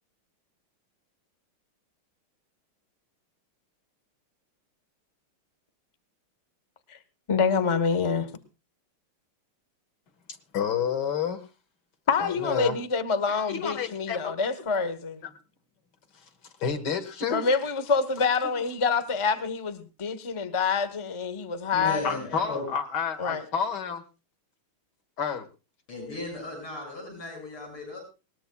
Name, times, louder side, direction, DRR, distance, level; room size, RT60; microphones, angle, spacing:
voice 1, 7.3-8.3 12.1-15.2 17.3-22.2 23.2-23.4, left 5 dB, 30° left, 0.5 m, -26 dB
voice 2, 10.5-11.4 12.2-12.8 13.3-14.3 15.2-15.3 16.6-17.5 22.0-24.0 25.2-25.5, left 7 dB, 55° left, 2.0 m, -30 dB
voice 3, 21.7-22.7 25.9-28.0, left 2 dB, 80° left, 7.8 m, -36 dB
20.5 x 19.5 x 2.3 m
omnidirectional pair, 2.3 m